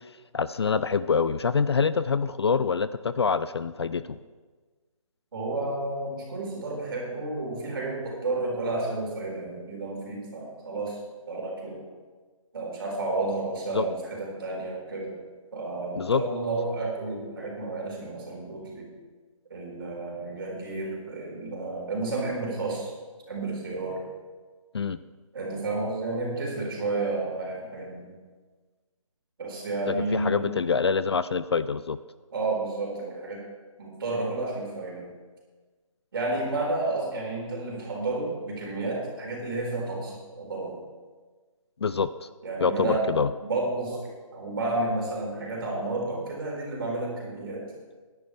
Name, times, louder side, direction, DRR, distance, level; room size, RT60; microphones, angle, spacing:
voice 1, 0.3-4.2 13.7-13.8 16.0-16.2 24.7-25.0 29.9-32.0 41.8-42.3 42.6-43.3, left 5 dB, 50° left, 15 dB, 0.4 m, -25 dB
voice 2, 5.3-11.0 11.3-11.8 12.5-15.1 15.5-18.9 19.5-22.9 23.3-24.0 25.3-28.1 29.4-30.5 32.3-33.4 33.8-35.1 36.1-40.7 42.4-43.0 43.4-44.0 44.3-47.7, right 2 dB, 40° right, -2 dB, 4.2 m, -31 dB
16.0 x 10.5 x 3.3 m, 1.4 s
figure-of-eight pair, 155°, 17 cm